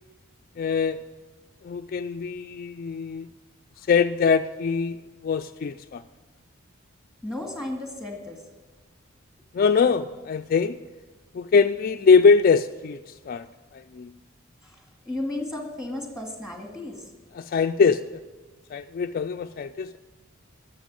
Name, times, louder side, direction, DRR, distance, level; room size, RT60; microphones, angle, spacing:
voice 1, 0.6-1.0 1.6-3.3 3.9-5.0 5.2-6.0 9.5-10.8 11.3-13.0 13.3-13.5 13.7-14.1 17.3-18.0 18.7-20.0, left 5 dB, 45° left, 8 dB, 0.3 m, -22 dB
voice 2, 7.2-8.4 14.6-14.7 15.1-17.0, left 1 dB, 5° right, 2 dB, 2.2 m, -33 dB
12.5 x 7.1 x 8.9 m, 1.3 s
head